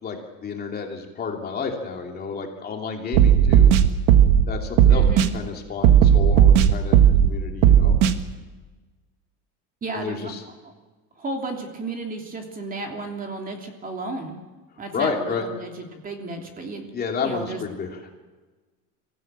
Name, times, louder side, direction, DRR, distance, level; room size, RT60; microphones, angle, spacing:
voice 1, 0.0-3.7 4.5-5.0 5.3-8.0 9.9-10.4 14.9-15.5 16.9-18.0, left 5 dB, 25° left, 2 dB, 2.9 m, -30 dB
sound 1, 3.1-4.5 4.8-5.3 5.8-7.3 7.6-8.1, right 9 dB, 75° right, 1.6 m, -14 dB
voice 2, 4.9-5.3 9.8-10.3 10.6-10.7 11.2-14.4 14.8-16.8 17.2-17.6, right 2 dB, 25° right, 3 dB, 3.0 m, -33 dB
24.0 x 15.5 x 8.8 m, 1.3 s
cardioid pair, 145°, 35 cm